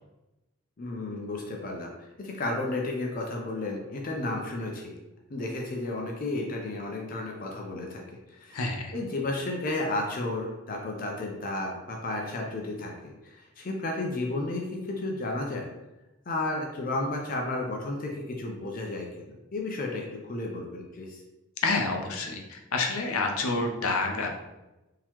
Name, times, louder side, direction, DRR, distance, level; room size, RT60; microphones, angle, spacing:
voice 1, 0.8-1.9 2.2-5.0 5.3-8.0 8.3-8.7 8.9-15.7 16.3-19.3 19.5-21.2, left 2 dB, 40° left, 0 dB, 0.5 m, -32 dB
voice 2, 8.5-8.9 21.6-24.3, left 3 dB, 80° left, 2 dB, 0.6 m, -28 dB
3.7 x 2.8 x 2.9 m, 1.0 s
head